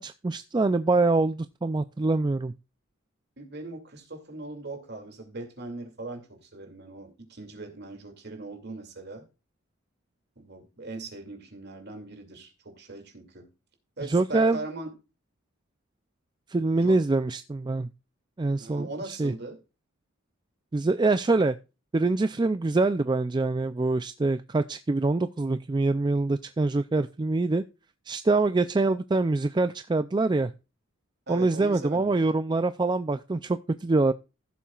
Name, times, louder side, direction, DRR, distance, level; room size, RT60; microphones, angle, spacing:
voice 1, 0.0-2.5 14.1-14.6 16.5-17.9 18.4-19.3 20.7-21.6 21.9-27.6 28.1-30.5 31.3-34.1, right 3 dB, 20° right, 0.3 m, -25 dB
voice 2, 3.4-9.3 10.4-13.5 14.0-14.9 16.7-17.0 18.6-19.6 31.3-32.1, right 2 dB, 50° right, 2.5 m, -40 dB
15.5 x 7.1 x 2.4 m
head